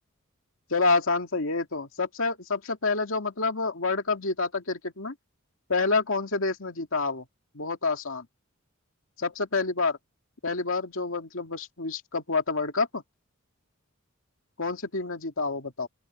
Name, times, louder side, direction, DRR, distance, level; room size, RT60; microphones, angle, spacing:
voice 1, 0.7-5.1 5.7-7.2 7.5-8.3 9.2-10.0 10.4-13.0 14.6-15.9, left 3 dB, 70° left, 2.4 m, -28 dB
open air
head